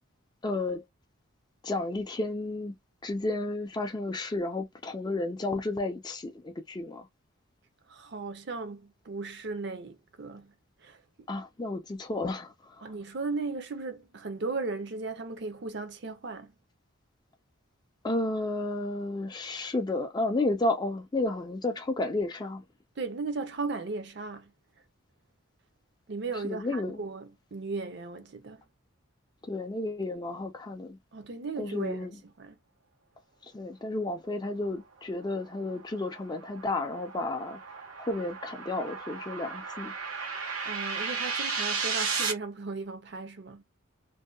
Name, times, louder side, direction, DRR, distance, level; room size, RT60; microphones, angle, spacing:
voice 1, 0.4-0.8 1.6-2.7 3.0-7.1 11.3-12.9 18.0-22.6 26.4-27.0 29.5-31.0 31.6-32.2 33.5-37.6 38.0-39.9, left 2 dB, 20° left, 0.3 m, -32 dB
voice 2, 7.9-10.5 10.8-11.3 12.8-16.5 23.0-24.5 26.1-28.6 31.1-32.1 32.4-32.6 40.6-43.6, right 3 dB, 55° right, 0.6 m, -36 dB
sound 1, 35.4-42.3, right 5 dB, 90° right, 1.1 m, -34 dB
2.6 x 2.1 x 2.2 m
head